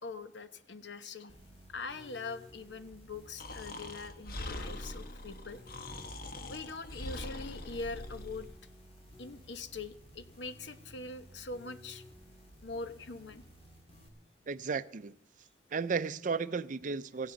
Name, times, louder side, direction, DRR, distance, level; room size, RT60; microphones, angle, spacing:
voice 1, 0.0-1.3 1.7-5.6 6.5-8.5 9.2-12.0 12.6-13.4, left 3 dB, 85° left, 10 dB, 1.0 m, -43 dB
sound 1, 1.3-14.1, equal, 35° left, 2.7 m, -55 dB
Breathing, 3.4-8.5, left 1 dB, 55° left, 1.2 m, -43 dB
voice 2, 14.5-15.1 15.7-17.3, right 5 dB, 50° right, 15 dB, 0.5 m, -34 dB
17.0 x 15.5 x 3.9 m, 0.64 s
head